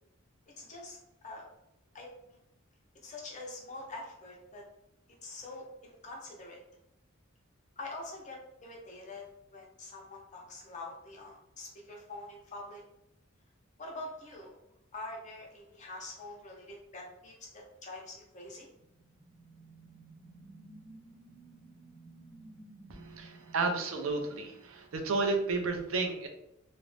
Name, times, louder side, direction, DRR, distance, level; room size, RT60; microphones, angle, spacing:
voice 1, 0.6-1.4 1.9-2.4 3.0-4.6 5.2-6.6 7.8-12.8 13.8-14.5 14.9-18.7, left 2 dB, 35° left, -2 dB, 0.6 m, -45 dB
sound 1, 18.6-25.1, right 2 dB, 20° right, 0.6 m, -55 dB
voice 2, 22.9-26.3, right 3 dB, 85° right, 4 dB, 0.5 m, -32 dB
2.5 x 2.1 x 3.1 m, 0.83 s
head